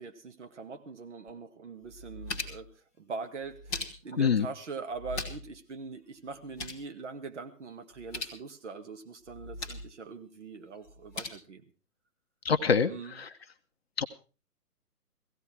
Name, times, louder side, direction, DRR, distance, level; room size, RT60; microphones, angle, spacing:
voice 1, 0.0-11.6 12.9-13.2, right 4 dB, 45° right, 6 dB, 2.2 m, -42 dB
sound 1, 1.3-1.4 1.8-2.7 3.4-4.3 4.9-5.6 5.8-5.9 6.3-6.9 7.9-8.4 9.3-9.9 10.8-11.3, left 2 dB, 5° left, 0.7 m, -39 dB
voice 2, 12.4-12.9 13.2-13.3 14.0-14.1, left 6 dB, 40° left, 8 dB, 0.9 m, -24 dB
17.0 x 15.5 x 4.6 m, 0.35 s
figure-of-eight pair, 140°, 47 cm